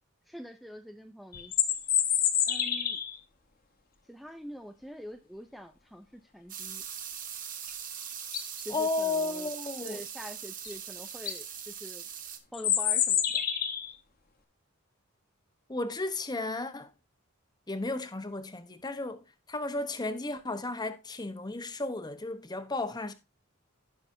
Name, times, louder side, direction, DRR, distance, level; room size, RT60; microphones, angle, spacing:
voice 1, 0.3-1.5 2.5-3.0 4.1-6.8 8.7-9.5 9.8-12.0 12.5-13.4, equal, ahead, 0.5 m, -45 dB
sound 1, 1.3-3.2 7.7-7.8 8.2-8.6 10.6-10.7 11.1-11.4 12.5-13.9, left 9 dB, 45° left, 1.1 m, -27 dB
sound 2, 6.5-12.4, right 8 dB, 40° right, 1.2 m, -41 dB
voice 2, 8.7-10.0 15.7-16.9 17.7-19.2 19.5-23.1, left 2 dB, 20° left, 0.9 m, -33 dB
16.5 x 5.8 x 2.7 m
head